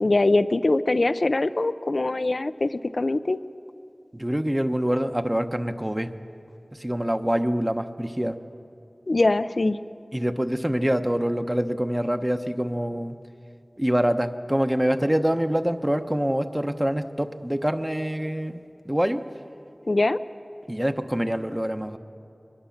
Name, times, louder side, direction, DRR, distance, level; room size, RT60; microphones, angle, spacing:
voice 1, 0.0-3.4 9.1-9.8 19.9-20.2, left 2 dB, 70° left, 11 dB, 0.5 m, -22 dB
voice 2, 4.1-6.1 6.7-8.4 10.1-13.2 13.8-19.2 20.7-22.0, equal, 20° right, 7 dB, 1.0 m, -25 dB
22.5 x 21.0 x 7.2 m, 2.6 s
wide cardioid pair, 45°, 0 cm